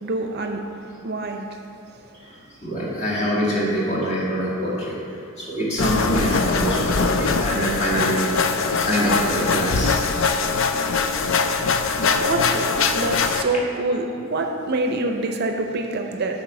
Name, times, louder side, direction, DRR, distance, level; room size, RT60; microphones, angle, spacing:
voice 1, 0.0-1.6 12.2-16.4, right 2 dB, 50° right, 4 dB, 0.5 m, -26 dB
voice 2, 2.6-4.9 5.4-8.2 8.8-10.0, equal, 35° left, -6 dB, 2.0 m, -24 dB
sound 1, 5.8-13.4, left 4 dB, 65° left, 0.5 m, -22 dB
8.9 x 4.2 x 6.1 m, 2.5 s
head